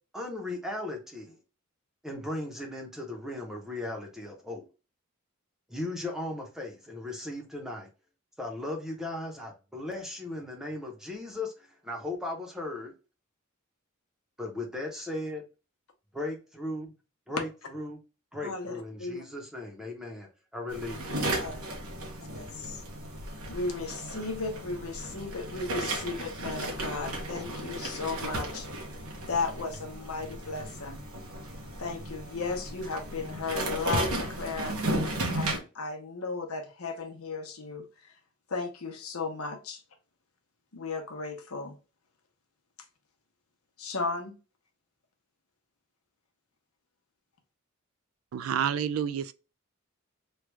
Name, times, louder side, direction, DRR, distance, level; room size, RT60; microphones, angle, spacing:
voice 1, 0.1-1.4 2.0-4.7 5.7-7.9 8.4-12.9 14.4-15.4 16.1-16.9 17.3-18.0 18.3-21.2, left 2 dB, ahead, 0.8 m, -37 dB
voice 2, 18.4-19.2 21.2-21.6 22.3-22.8 23.5-28.7 29.3-31.0 31.8-34.8 35.3-37.9 38.5-39.8 40.7-41.8 43.8-44.3, left 4 dB, 90° left, 0.9 m, -35 dB
sound 1, 20.7-35.6, right 1 dB, 90° right, 1.0 m, -35 dB
voice 3, 48.3-49.3, right 8 dB, 70° right, 0.3 m, -29 dB
3.2 x 2.3 x 3.2 m
head